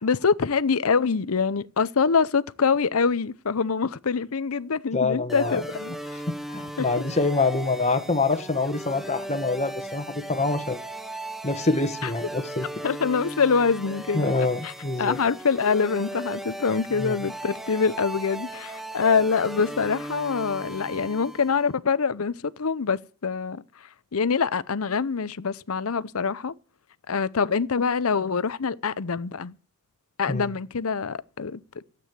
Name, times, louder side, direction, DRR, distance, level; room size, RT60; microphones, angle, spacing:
voice 1, 0.0-5.9 6.8-7.0 12.0-12.1 12.8-14.7 15.0-23.6 24.1-26.5 27.1-29.5 30.2-31.6, left 5 dB, 75° left, 0.7 m, -25 dB
voice 2, 4.9-5.6 6.1-6.2 6.5-10.8 11.4-12.7 14.1-15.2 17.0-17.2 30.3-30.5, left 3 dB, 30° left, 1.4 m, -26 dB
sound 1, 5.3-21.7, right 1 dB, ahead, 0.9 m, -37 dB
13.0 x 8.6 x 9.3 m
head